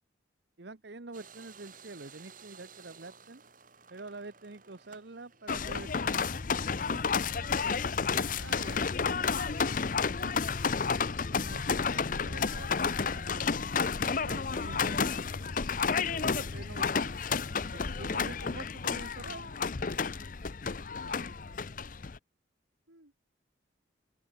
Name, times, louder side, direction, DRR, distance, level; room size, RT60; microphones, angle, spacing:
voice 1, 0.6-3.4 3.9-6.2 6.7-7.0 10.2-10.4 11.3-13.7 14.0-15.1 16.0-17.1 17.6-19.6, right 3 dB, 60° right, 1.0 m, -47 dB
sound 1, 1.1-8.1, right 6 dB, 45° right, 7.8 m, -56 dB
sound 2, 5.5-22.2, left 5 dB, 45° left, 0.6 m, -31 dB
voice 2, 8.3-9.9 11.5-12.0 21.0-21.3 22.9-23.1, right 2 dB, 85° right, 6.0 m, -51 dB
head